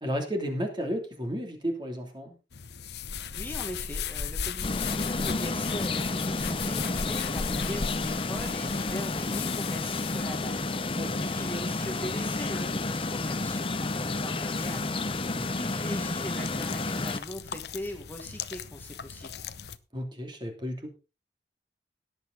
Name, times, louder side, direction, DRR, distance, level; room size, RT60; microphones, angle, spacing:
voice 1, 0.0-2.3 11.0-11.2 15.3-15.5 19.9-20.9, equal, 25° right, 4 dB, 2.9 m, -33 dB
sound 1, 2.5-19.8, left 6 dB, 70° left, 0.8 m, -38 dB
voice 2, 3.3-10.6 11.2-14.9 15.3-19.3, equal, 10° left, 3 dB, 1.6 m, -40 dB
sound 2, 4.6-17.2, left 3 dB, 30° left, 0.8 m, -31 dB
17.5 x 8.3 x 3.9 m, 0.32 s
head